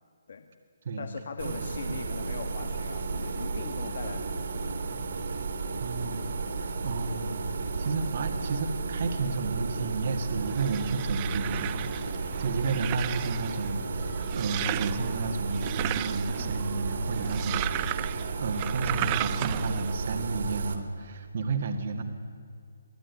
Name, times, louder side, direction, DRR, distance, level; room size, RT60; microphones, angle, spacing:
voice 1, 1.0-4.8, left 5 dB, 55° left, 7 dB, 1.6 m, -40 dB
sound 1, 1.4-20.8, right 4 dB, 55° right, 2.7 m, -33 dB
voice 2, 5.8-6.3 6.6-22.0, right 3 dB, 40° right, 5 dB, 1.8 m, -32 dB
sound 2, 10.2-19.9, right 16 dB, 20° right, 0.5 m, -35 dB
24.0 x 16.5 x 9.6 m, 2.4 s
hypercardioid pair, 170°, 0 cm